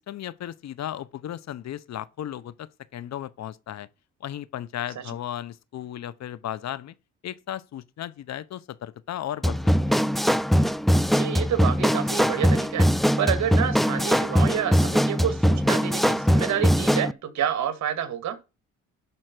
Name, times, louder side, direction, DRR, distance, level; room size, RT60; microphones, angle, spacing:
voice 1, 0.0-3.9 4.2-6.9 7.2-9.6 9.9-10.0, left 11 dB, 60° left, 0.8 m, -35 dB
sound 1, 9.4-17.1, equal, ahead, 0.4 m, -21 dB
voice 2, 11.1-12.9 13.2-18.4, right 9 dB, 65° right, 2.0 m, -28 dB
11.0 x 4.5 x 6.1 m
cardioid pair, 90°, 30 cm